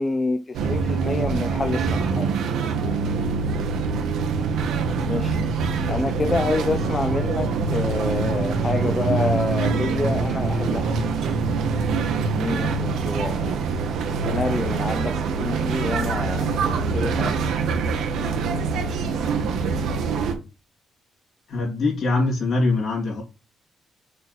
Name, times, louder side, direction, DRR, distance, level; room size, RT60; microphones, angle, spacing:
voice 1, 0.0-2.3 5.0-5.4 5.9-10.9 12.2-13.7 14.2-17.6, left 3 dB, 30° left, 0.6 m, -28 dB
sound 1, 0.5-20.3, right 4 dB, 80° right, 1.2 m, -24 dB
voice 2, 21.5-23.2, left 3 dB, 65° left, 3.0 m, -23 dB
6.8 x 3.3 x 4.2 m
cardioid pair, 90°, 0 cm